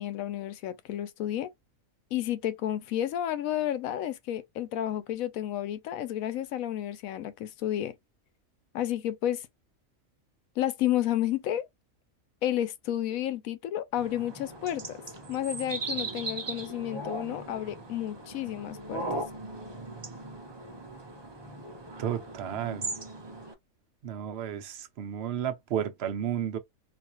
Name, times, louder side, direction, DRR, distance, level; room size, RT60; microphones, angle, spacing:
voice 1, 0.0-1.5 2.1-7.9 8.7-9.5 10.6-11.7 12.4-15.0 15.3-19.0, left 12 dB, 85° left, 1.0 m, -31 dB
sound 1, 14.0-23.5, right 2 dB, 35° right, 0.4 m, -38 dB
voice 2, 22.0-22.9 24.0-26.6, right 9 dB, 60° right, 0.8 m, -32 dB
4.0 x 2.4 x 2.9 m
omnidirectional pair, 1.4 m